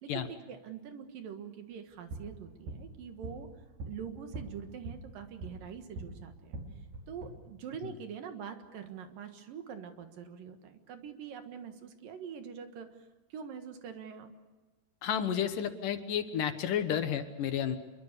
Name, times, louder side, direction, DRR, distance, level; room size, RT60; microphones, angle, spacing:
voice 1, 0.0-3.5 3.9-6.6 7.1-14.3, right 7 dB, 70° right, 7 dB, 3.2 m, -44 dB
sound 1, 1.9-6.1 6.4-7.3, right 2 dB, 85° right, 6.6 m, -44 dB
voice 2, 15.0-17.8, left 9 dB, 70° left, 9 dB, 2.6 m, -31 dB
26.5 x 23.0 x 6.7 m, 1.2 s
omnidirectional pair, 4.3 m